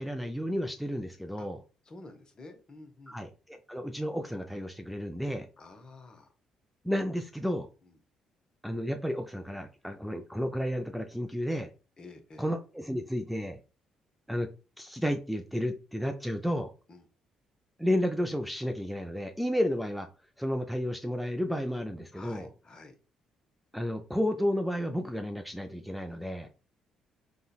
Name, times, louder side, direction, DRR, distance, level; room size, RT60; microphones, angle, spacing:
voice 1, 0.0-1.6 3.1-5.5 6.8-7.7 8.6-11.7 12.4-13.6 14.3-14.5 14.8-16.7 17.8-20.1 20.4-22.5 23.7-26.5, equal, ahead, 4 dB, 0.3 m, -32 dB
voice 2, 1.9-3.2 5.6-6.3 7.8-7.9 12.0-12.4 16.9-17.0 22.1-22.9, left 2 dB, 40° left, 7 dB, 0.7 m, -50 dB
3.7 x 2.1 x 2.3 m, 0.34 s
hypercardioid pair, 50°, 2 cm